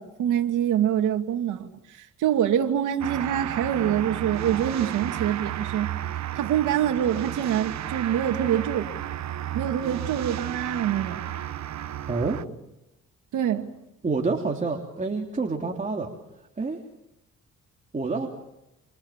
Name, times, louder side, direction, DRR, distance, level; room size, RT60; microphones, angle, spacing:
voice 1, 0.0-1.7 2.2-5.9 6.3-8.9 9.5-11.2 13.3-13.7, right 10 dB, 80° right, 2.6 m, -25 dB
sound 1, 3.0-12.5, right 11 dB, 65° right, 1.2 m, -33 dB
voice 2, 12.1-12.4 14.0-16.1 16.6-16.8 17.9-18.3, right 4 dB, 25° right, 3.4 m, -27 dB
29.0 x 26.0 x 7.5 m
cardioid pair, 90°, 30 cm